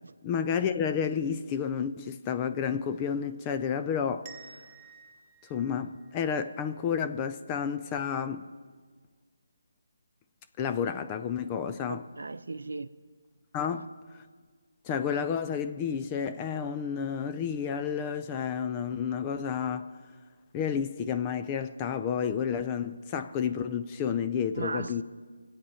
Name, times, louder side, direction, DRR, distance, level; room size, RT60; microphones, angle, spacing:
voice 1, 0.2-4.3 5.5-8.5 10.6-12.0 13.5-13.9 14.8-19.9 20.5-25.0, left 7 dB, 20° left, 0.4 m, -30 dB
sound 1, 4.2-7.0, right 6 dB, 25° right, 0.8 m, -53 dB
voice 2, 11.9-12.9 24.5-25.0, right 3 dB, 70° right, 0.7 m, -37 dB
23.0 x 8.4 x 5.7 m
figure-of-eight pair, 160°, 0 cm